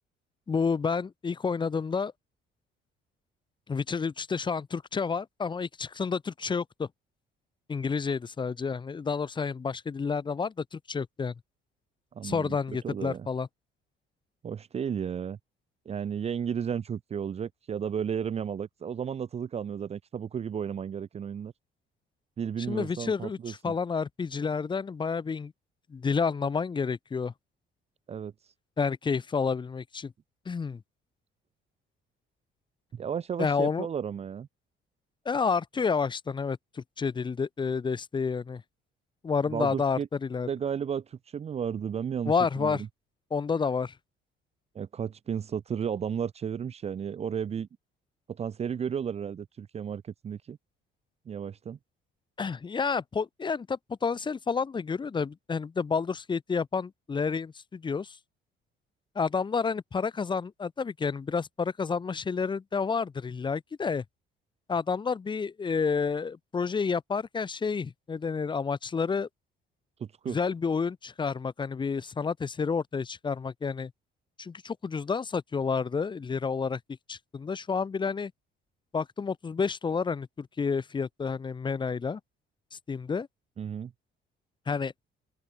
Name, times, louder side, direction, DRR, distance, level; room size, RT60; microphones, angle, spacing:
voice 1, 0.5-2.1 3.7-6.9 7.7-11.3 12.2-13.5 22.7-25.5 25.9-27.3 28.8-30.1 30.5-30.8 33.4-33.9 35.2-38.6 39.2-40.5 42.3-42.8 43.3-44.0 52.4-58.2 59.1-64.0 64.7-69.3 70.3-73.9 74.4-76.8 77.1-78.3 78.9-82.2 82.7-83.3 84.7-84.9, left 5 dB, 25° left, 2.3 m, -30 dB
voice 2, 12.1-13.3 14.4-15.4 15.8-21.5 22.4-23.7 28.1-28.3 32.9-34.5 39.5-40.1 40.5-42.3 42.6-42.8 44.7-47.7 48.3-50.6 51.3-51.8 70.0-70.4 83.6-83.9, right 7 dB, 30° right, 1.1 m, -33 dB
open air
cardioid pair, 155°, 20 cm